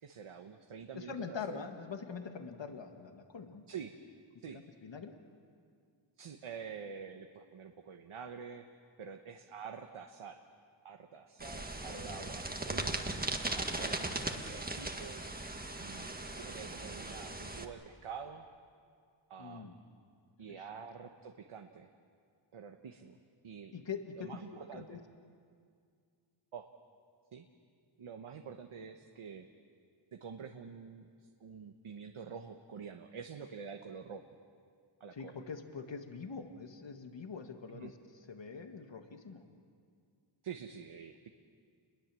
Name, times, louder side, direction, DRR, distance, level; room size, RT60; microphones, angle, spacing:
voice 1, 0.0-1.6 3.7-3.9 4.4-4.6 6.2-8.7 9.0-10.4 10.8-13.1 13.5-15.3 15.8-18.5 19.3-19.7 20.4-21.9 22.5-23.2 23.4-23.8 24.2-25.0 26.5-26.7 27.3-27.4 28.0-29.5 30.1-31.1 31.4-34.2 35.0-35.4 37.7-37.9 40.4-41.3, right 6 dB, 80° right, 5 dB, 1.3 m, -47 dB
voice 2, 0.9-3.6 4.5-5.1 11.9-12.3 19.4-19.8 20.5-20.8 23.7-24.3 24.7-25.0 35.1-38.0 38.3-39.4, left 5 dB, 60° left, 5 dB, 1.8 m, -44 dB
sound 1, 11.4-17.6, right 2 dB, 20° right, 1.7 m, -38 dB
29.0 x 22.0 x 7.6 m, 2.2 s
wide cardioid pair, 90°, 49 cm